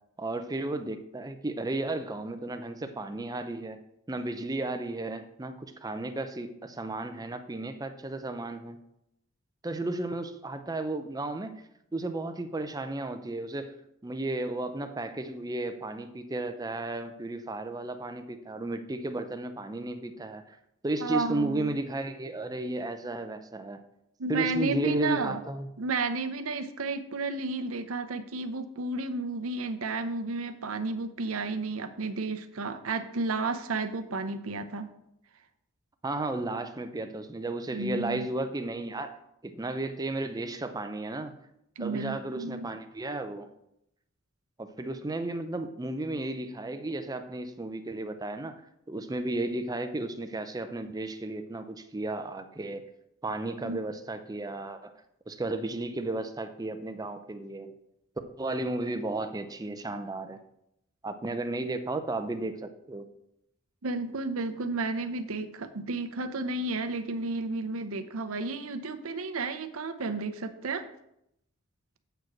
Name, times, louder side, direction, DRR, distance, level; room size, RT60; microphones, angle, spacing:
voice 1, 0.2-3.8 4.1-8.8 9.6-11.5 11.9-13.7 14.0-20.6 20.8-23.8 24.3-25.7 36.0-39.2 39.4-41.3 41.8-43.5 44.6-48.6 48.9-52.8 53.2-54.9 55.3-57.8 58.4-60.4 61.0-63.1, right 2 dB, 15° right, 9 dB, 0.5 m, -34 dB
voice 2, 21.0-21.8 24.2-25.4 25.8-34.9 37.7-38.3 41.8-42.7 53.6-53.8 63.8-70.9, right 3 dB, 80° right, 10 dB, 0.7 m, -32 dB
7.8 x 4.9 x 5.9 m, 0.79 s
head